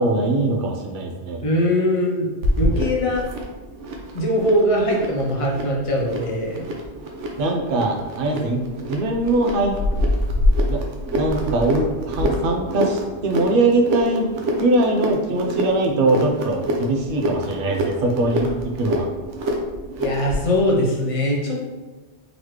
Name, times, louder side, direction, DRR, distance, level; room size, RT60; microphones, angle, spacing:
voice 1, 0.0-1.4 7.4-9.8 10.7-10.8 11.2-14.3 14.6-19.1, right 2 dB, 55° right, 2 dB, 0.7 m, -22 dB
voice 2, 1.4-2.3 2.6-3.2 4.1-6.6 20.0-21.7, left 1 dB, 35° left, -2 dB, 0.7 m, -21 dB
sound 1, 2.4-20.4, equal, 85° right, 1.0 m, -26 dB
4.0 x 3.1 x 3.1 m, 1.2 s
omnidirectional pair, 1.2 m